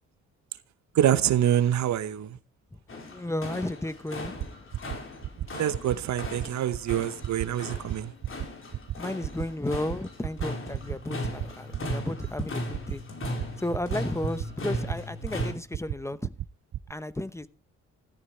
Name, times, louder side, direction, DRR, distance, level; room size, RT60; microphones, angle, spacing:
voice 1, 0.9-2.4 5.5-8.1, right 11 dB, 65° right, 1.0 m, -25 dB
sound 1, 2.9-15.5, left 1 dB, 45° left, 4.3 m, -37 dB
voice 2, 2.9-4.5 9.0-13.0 13.6-16.3 16.9-17.5, left 1 dB, 10° left, 0.8 m, -33 dB
sound 2, 4.2-4.5 4.7-5.0 5.2-5.5 5.7-6.0 6.2-6.5 6.7-7.0 7.2-7.5 7.7-8.0 8.2-8.5 8.7-8.9 9.2-9.5 9.7-10.0 10.2-10.5 10.7-11.0 11.2-11.5 11.7-12.0 12.2-12.5 12.7-13.0 13.2-13.5 13.7-14.0 14.2-14.5 14.7-15.0 15.2-15.4 15.7-15.9 16.2-16.5 16.7-16.9, right 12 dB, 50° right, 0.6 m, -32 dB
14.5 x 13.5 x 3.3 m
cardioid pair, 90°, 30 cm